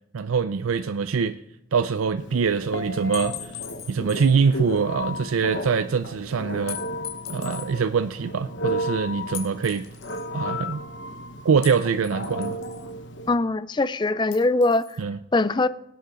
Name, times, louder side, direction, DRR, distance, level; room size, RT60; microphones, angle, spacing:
voice 1, 0.1-1.4 1.7-3.5 3.9-6.8 7.3-9.8 10.3-10.8 11.4-12.6 15.0-15.2, right 5 dB, 85° right, 0.5 m, -24 dB
Telephone, 2.2-13.4, equal, 60° left, 1.1 m, -34 dB
sound 1, 3.1-4.4 4.8-4.9 6.7-7.7 9.3-10.3 11.6-12.9 14.3-15.0, left 10 dB, 75° left, 3.0 m, -39 dB
voice 2, 13.3-15.0 15.3-15.7, left 2 dB, 20° left, 0.4 m, -22 dB
18.0 x 8.4 x 3.8 m
head